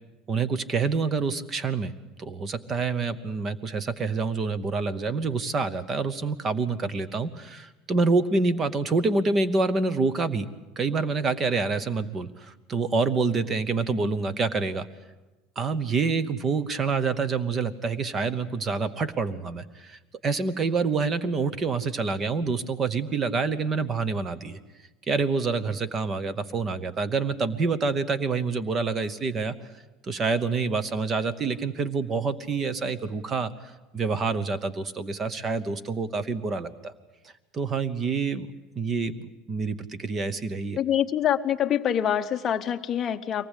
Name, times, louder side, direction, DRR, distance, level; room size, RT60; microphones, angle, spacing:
voice 1, 0.3-1.9 2.2-10.5 10.8-14.9 15.6-24.6 25.1-29.5 30.0-36.9 37.5-39.2 39.5-40.8, right 4 dB, 20° right, 15 dB, 0.9 m, -27 dB
voice 2, 40.8-43.5, left 10 dB, 25° left, 6 dB, 0.9 m, -25 dB
24.0 x 19.0 x 8.2 m, 1.1 s
cardioid pair, 180°, 0 cm